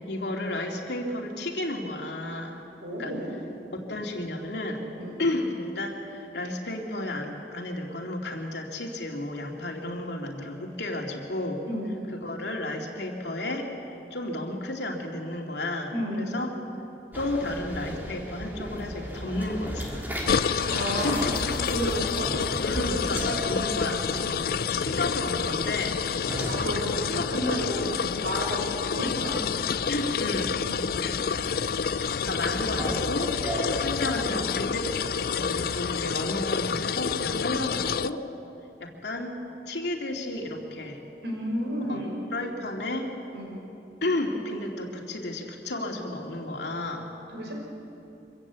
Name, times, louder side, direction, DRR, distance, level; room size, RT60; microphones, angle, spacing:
voice 1, 0.1-2.6 3.0-3.1 3.7-4.8 5.2-11.6 12.1-13.7 14.1-16.5 17.1-19.9 21.0-21.3 22.6-26.0 27.1-27.2 27.9-28.0 29.9-30.5 31.0-31.2 31.9-33.3 33.8-38.2 38.8-41.0 41.9-42.0 42.3-43.1 44.0-47.1, left 1 dB, 75° left, 1 dB, 2.7 m, -32 dB
voice 2, 2.8-3.3 4.9-5.2 11.6-11.9 15.9-16.3 20.7-21.1 21.7-22.6 23.7-23.9 24.2-24.5 26.5-29.4 30.6-31.0 41.2-42.1 43.3-43.6 47.3-47.5, equal, 80° right, 0 dB, 4.7 m, -32 dB
sound 1, 17.1-34.3, equal, 10° right, 2.9 m, -37 dB
sound 2, 20.3-38.1, left 6 dB, 55° left, 0.4 m, -28 dB
25.0 x 15.0 x 8.4 m, 2.9 s
head